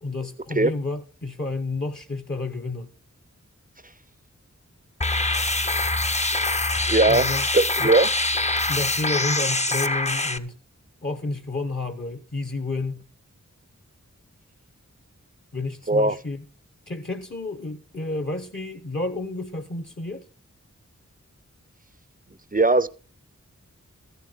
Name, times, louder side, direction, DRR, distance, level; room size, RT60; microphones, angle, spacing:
voice 1, 0.0-2.9 7.1-7.5 7.8-7.9 8.7-10.6 11.0-13.1 15.5-16.5 16.9-20.3, left 2 dB, 40° left, 1.1 m, -30 dB
sound 1, 5.0-10.4, left 2 dB, 20° left, 0.7 m, -24 dB
voice 2, 5.3-5.6 6.9-7.3 7.5-8.1 15.9-16.2 22.5-22.9, right 2 dB, 30° right, 0.5 m, -19 dB
13.5 x 11.5 x 3.9 m
wide cardioid pair, 40°, 30 cm